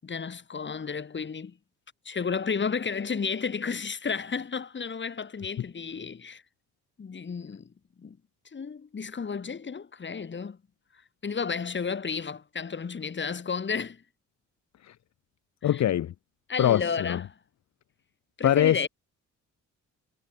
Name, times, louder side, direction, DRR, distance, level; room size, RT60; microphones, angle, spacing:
voice 1, 0.0-1.6 2.0-6.4 7.0-8.2 8.5-10.6 11.2-14.0 15.6-15.8 16.5-17.2 18.4-18.9, left 5 dB, 40° left, 5.9 m, -32 dB
voice 2, 15.6-16.1 16.6-17.2 18.4-18.8, left 11 dB, 65° left, 1.5 m, -23 dB
cardioid pair, 90°, 30 cm